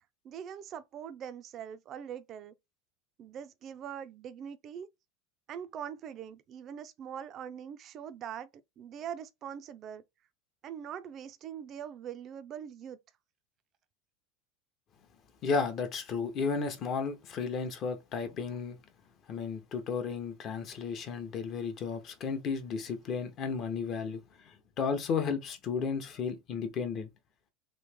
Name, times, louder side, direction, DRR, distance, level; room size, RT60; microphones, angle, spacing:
voice 1, 0.2-2.5 3.2-4.9 5.5-8.5 8.8-10.0 10.6-13.0, right 8 dB, 35° right, 0.4 m, -42 dB
voice 2, 15.4-18.8 19.3-27.1, left 5 dB, 40° left, 0.7 m, -33 dB
3.1 x 2.7 x 3.3 m
supercardioid pair, 140°, 0 cm